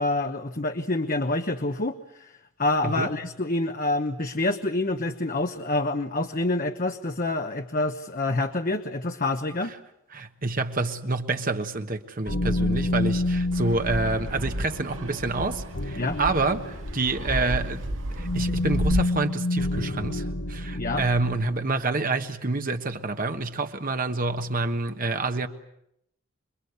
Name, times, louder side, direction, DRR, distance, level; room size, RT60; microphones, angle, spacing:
voice 1, 0.0-2.3 2.6-9.7 16.0-16.2 20.7-21.0, left 2 dB, 40° left, 1.1 m, -27 dB
voice 2, 10.1-17.8 18.2-25.5, right 3 dB, 45° right, 1.3 m, -28 dB
sound 1, 12.3-21.4, left 2 dB, 65° left, 1.2 m, -29 dB
Fixed-wing aircraft airplane, 13.5-19.0, equal, 70° right, 2.0 m, -32 dB
27.5 x 22.5 x 8.2 m
head